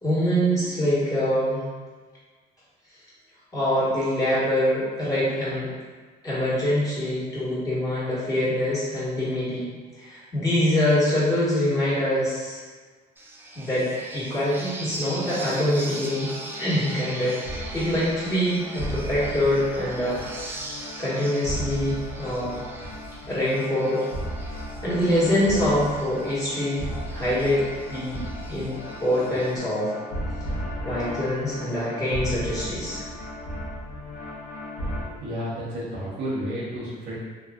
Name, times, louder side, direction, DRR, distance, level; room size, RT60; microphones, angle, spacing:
voice 1, 0.0-1.6 3.5-5.7 6.2-9.7 10.0-12.6 13.5-16.3 16.6-20.2 21.0-22.6 23.3-24.0 24.8-28.2 28.5-29.9 30.8-33.1, left 1 dB, 20° left, -10 dB, 1.4 m, -24 dB
sound 1, 13.2-29.6, right 2 dB, 15° right, 0.4 m, -41 dB
sound 2, 15.6-35.0, equal, 50° left, 0.9 m, -35 dB
voice 2, 35.2-37.2, equal, 85° right, -8 dB, 1.0 m, -31 dB
3.0 x 2.5 x 2.4 m, 1.4 s
cardioid pair, 110°, 17 cm